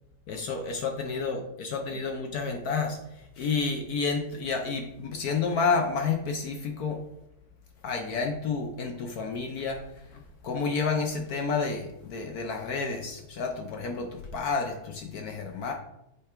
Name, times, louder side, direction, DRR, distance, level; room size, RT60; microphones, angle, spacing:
voice 1, 0.3-3.0 3.4-7.0 7.8-9.8 10.1-15.7, left 4 dB, 70° left, 3 dB, 0.9 m, -30 dB
8.3 x 3.3 x 4.4 m, 0.86 s
omnidirectional pair, 2.4 m